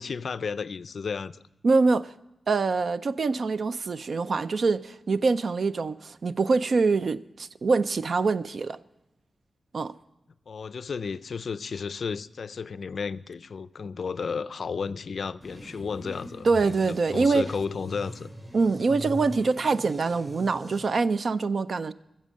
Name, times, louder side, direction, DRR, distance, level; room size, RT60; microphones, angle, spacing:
voice 1, 0.0-1.4 10.5-18.3, left 5 dB, 60° left, 0.4 m, -33 dB
voice 2, 1.6-2.1 2.5-8.8 9.7-9.9 16.4-17.5 18.5-21.9, right 4 dB, 55° right, 0.4 m, -24 dB
sound 1, 15.4-20.9, equal, 20° right, 3.4 m, -42 dB
14.5 x 7.4 x 7.5 m
wide cardioid pair, 150°, 0 cm